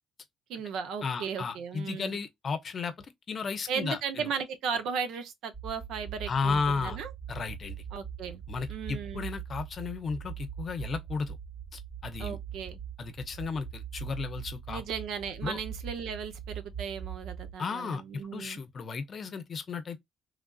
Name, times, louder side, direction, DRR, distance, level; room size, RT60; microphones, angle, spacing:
voice 1, 0.5-2.2 3.7-7.1 7.9-8.4 8.7-9.3 12.2-12.8 14.7-18.6, right 6 dB, 85° right, 0.6 m, -36 dB
voice 2, 1.0-4.3 6.3-7.0 7.3-7.8 8.5-11.4 11.7-12.4 13.0-14.8 15.4-15.6 17.6-20.0, left 5 dB, 50° left, 0.6 m, -34 dB
sound 1, 5.5-17.5, right 8 dB, 35° right, 0.6 m, -41 dB
3.3 x 2.4 x 2.3 m
cardioid pair, 90°, 0 cm